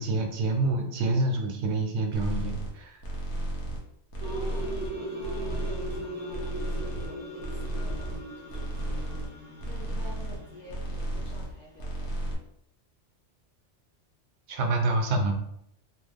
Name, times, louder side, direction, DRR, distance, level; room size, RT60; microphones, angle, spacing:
voice 1, 0.0-3.0 14.5-15.3, right 2 dB, 70° right, 3 dB, 0.9 m, -27 dB
sound 1, 2.1-2.7 3.0-3.8 4.1-4.9 5.2-6.0 6.3-7.1 7.4-8.2 8.5-9.3 9.6-10.4 10.7-11.5 11.8-12.3, right 1 dB, 70° left, 1.1 m, -33 dB
voice 2, 4.2-9.3 9.6-12.4, left 1 dB, 45° left, -3 dB, 0.6 m, -49 dB
sound 2, 4.2-11.4, right 1 dB, 15° right, 0.4 m, -39 dB
2.9 x 2.3 x 3.4 m, 0.72 s
omnidirectional pair, 1.2 m